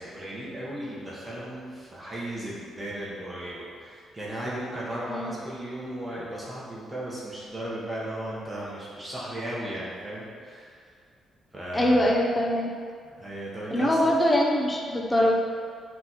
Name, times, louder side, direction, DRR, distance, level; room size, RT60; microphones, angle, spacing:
voice 1, 0.0-10.9 11.5-12.1 13.2-14.1, right 1 dB, 10° right, -7 dB, 1.6 m, -36 dB
voice 2, 11.7-12.7 13.7-15.3, left 1 dB, 10° left, -2 dB, 0.9 m, -23 dB
9.1 x 4.3 x 4.7 m, 2.2 s
cardioid pair, 155°, 0 cm